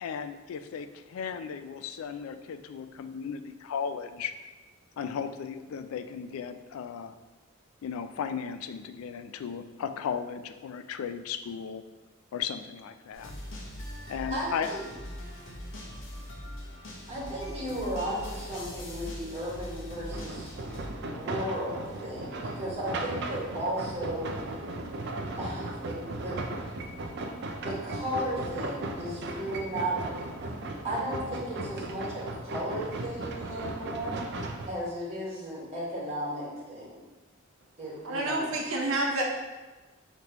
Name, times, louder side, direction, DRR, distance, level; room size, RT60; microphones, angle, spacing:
voice 1, 0.0-4.3 5.0-7.1 7.8-11.8 12.3-13.4 14.1-14.7, left 7 dB, 90° left, 10 dB, 0.3 m, -36 dB
sound 1, 13.1-20.9, equal, 70° left, 1.0 m, -41 dB
voice 2, 14.0-14.8 17.1-20.5 21.1-24.3 25.4-26.4 27.6-30.1 30.8-34.2 34.7-37.0 37.8-38.5, right 1 dB, 30° right, -7 dB, 1.4 m, -35 dB
sound 2, 20.1-34.7, right 2 dB, 55° right, 0.4 m, -36 dB
voice 3, 38.0-39.2, right 2 dB, 80° right, 0 dB, 0.8 m, -28 dB
5.1 x 3.1 x 3.0 m, 1.2 s
head